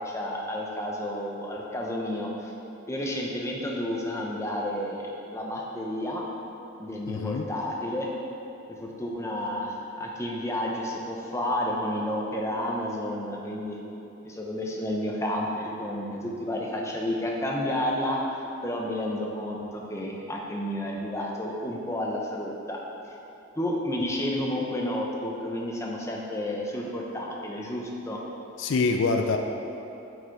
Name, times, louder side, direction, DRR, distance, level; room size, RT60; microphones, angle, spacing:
voice 1, 0.0-2.5 2.9-6.3 6.8-8.1 8.7-13.8 14.2-18.2 18.6-22.8 23.6-28.2, left 1 dB, 15° left, -2 dB, 0.7 m, -31 dB
voice 2, 7.1-7.5 28.6-29.4, left 4 dB, 65° left, 4 dB, 0.4 m, -25 dB
8.3 x 5.0 x 4.5 m, 2.9 s
head